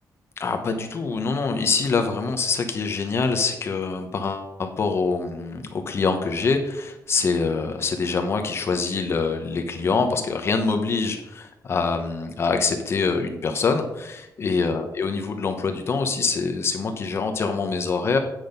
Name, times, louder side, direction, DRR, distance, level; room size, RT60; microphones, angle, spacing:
voice 1, 0.4-18.2, left 4 dB, 40° left, 6 dB, 0.9 m, -25 dB
9.0 x 6.1 x 5.2 m, 0.89 s
wide cardioid pair, 175°, 7 cm